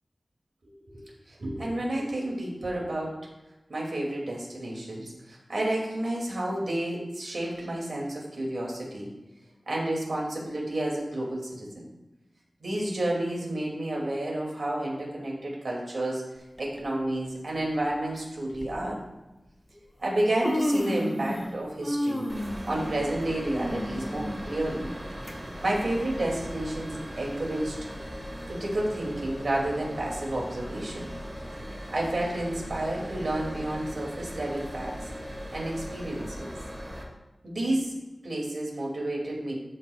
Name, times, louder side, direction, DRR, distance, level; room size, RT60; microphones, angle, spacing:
voice 1, 0.9-3.2 3.7-9.1 9.7-11.8 12.6-16.2 16.6-19.0 20.0-22.2 22.7-24.9 25.6-27.8 28.5-31.1 31.9-34.9 35.5-36.5 37.4-37.9 38.2-39.5, right 1 dB, 70° right, -2 dB, 2.6 m, -30 dB
Human voice, 16.6-16.8 17.8-17.9 18.5-18.7 19.7-19.8 20.1-21.5 21.8-25.3 25.7-25.8 26.7-26.8, left 1 dB, 10° left, 1.1 m, -32 dB
sound 1, 22.3-37.0, equal, 25° right, 2.2 m, -39 dB
12.5 x 5.6 x 2.4 m, 1.0 s
wide cardioid pair, 75°, 0 cm